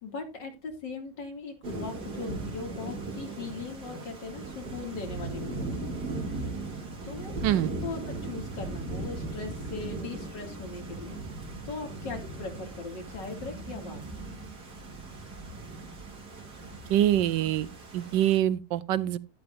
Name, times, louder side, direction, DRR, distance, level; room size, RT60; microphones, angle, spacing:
voice 1, 0.0-6.0 7.0-11.2 11.6-14.0, left 4 dB, 85° left, 3.1 m, -39 dB
Thunder / Rain, 1.6-18.4, right 2 dB, 65° right, 3.3 m, -38 dB
voice 2, 7.4-7.7 16.9-19.2, right 12 dB, 85° right, 1.3 m, -25 dB
12.0 x 11.0 x 2.6 m
omnidirectional pair, 1.9 m